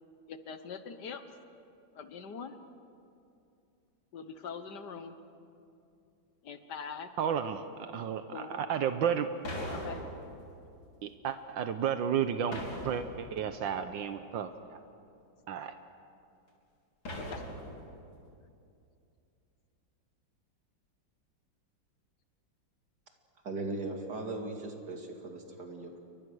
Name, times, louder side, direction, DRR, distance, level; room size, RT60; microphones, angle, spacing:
voice 1, 0.3-1.2 2.0-2.6 4.1-5.2 6.4-7.1 8.3-8.6 9.1-9.2 9.7-10.0 17.2-17.4, left 6 dB, 60° left, 9 dB, 1.8 m, -43 dB
voice 2, 7.2-9.3 11.0-14.8 15.5-15.7, right 8 dB, 80° right, 9 dB, 1.6 m, -32 dB
sound 1, 9.5-10.6 12.5-13.6 17.1-18.1, equal, 85° left, 4.4 m, -40 dB
voice 3, 23.4-26.0, right 2 dB, 55° right, 2 dB, 3.0 m, -38 dB
29.5 x 23.5 x 6.4 m, 2.5 s
omnidirectional pair, 2.1 m